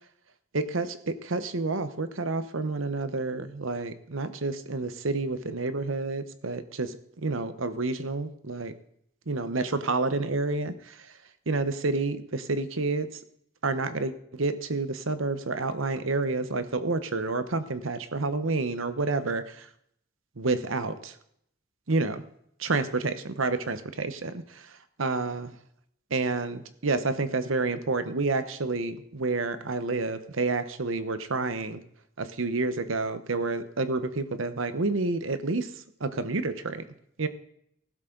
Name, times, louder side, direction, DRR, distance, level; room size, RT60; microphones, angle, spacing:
voice 1, 0.5-8.7 9.3-11.1 11.5-13.2 13.6-19.7 20.4-21.1 21.9-22.2 22.6-24.7 25.0-25.6 26.1-31.8 32.2-35.7 36.0-36.8 37.2-37.3, right 3 dB, 80° right, 11 dB, 1.0 m, -29 dB
15.5 x 12.5 x 3.9 m, 0.71 s
head